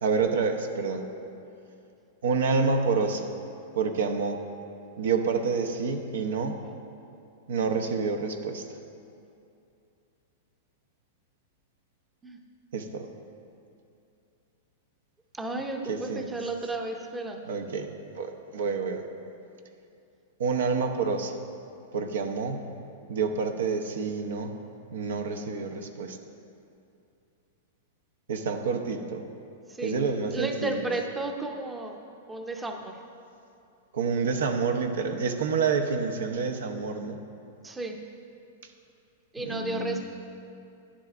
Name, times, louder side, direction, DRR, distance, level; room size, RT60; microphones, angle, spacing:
voice 1, 0.0-1.1 2.2-3.3 3.7-4.4 5.0-6.6 7.5-8.7 12.7-13.1 15.9-16.3 17.5-19.1 20.4-21.4 21.9-22.7 23.1-24.5 24.9-26.2 28.3-29.2 29.8-30.9 33.9-37.2 39.4-40.0, right 5 dB, 80° right, 5 dB, 0.7 m, -28 dB
voice 2, 15.3-17.4 18.5-18.7 29.7-30.0 30.3-32.0 32.3-33.0 37.6-38.0 39.3-40.1, right 2 dB, 10° right, 4 dB, 0.6 m, -33 dB
11.5 x 10.0 x 2.4 m, 2.6 s
hypercardioid pair, 135°, 0 cm